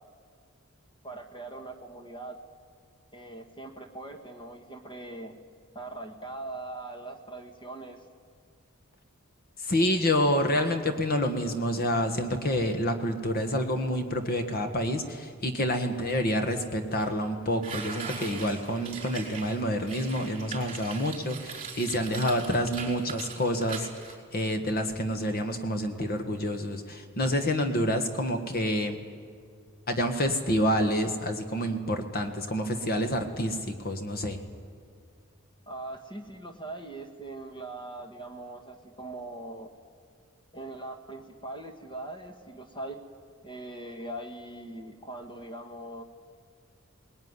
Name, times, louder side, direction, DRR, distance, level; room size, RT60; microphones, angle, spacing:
voice 1, 1.0-2.4 3.1-5.3 5.7-8.0 35.7-39.7 40.5-43.0 43.4-46.0, right 2 dB, 25° left, 4 dB, 1.5 m, -41 dB
voice 2, 9.6-23.9 24.3-29.0 29.9-34.4, equal, 45° left, 6 dB, 1.5 m, -28 dB
sound 1, 17.0-17.1 17.6-24.1, right 5 dB, 30° right, 5.2 m, -41 dB
20.0 x 20.0 x 9.7 m, 2.1 s
head